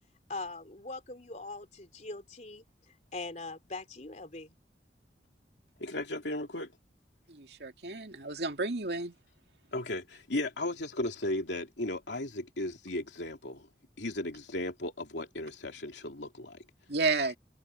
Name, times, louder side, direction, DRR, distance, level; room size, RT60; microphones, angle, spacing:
voice 1, 0.3-4.6, left 3 dB, 45° left, 3.4 m, -42 dB
voice 2, 5.8-6.7 9.7-13.7 14.0-16.6, left 1 dB, 90° left, 2.8 m, -35 dB
voice 3, 7.3-9.1 16.9-17.4, right 3 dB, 70° right, 2.3 m, -31 dB
head